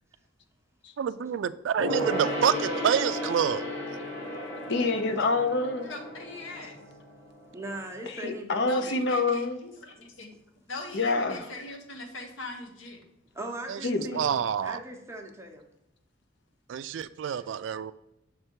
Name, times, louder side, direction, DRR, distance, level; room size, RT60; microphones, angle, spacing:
voice 1, 1.0-3.6 13.7-13.8 14.1-14.8 16.7-17.9, right 8 dB, 70° right, 14 dB, 0.3 m, -27 dB
Gong, 1.8-7.7 7.9-8.0, equal, 35° left, 1.9 m, -34 dB
voice 2, 4.7-5.9 8.1-9.6 10.9-11.5 13.8-14.2, left 3 dB, 65° left, 8 dB, 0.6 m, -27 dB
voice 3, 5.8-6.8 8.6-10.3 10.7-13.0, left 3 dB, 90° left, 4 dB, 1.1 m, -41 dB
voice 4, 7.5-8.9 13.3-15.6 17.2-17.5, right 1 dB, 15° right, 2 dB, 0.8 m, -40 dB
6.5 x 3.3 x 4.6 m, 0.85 s
head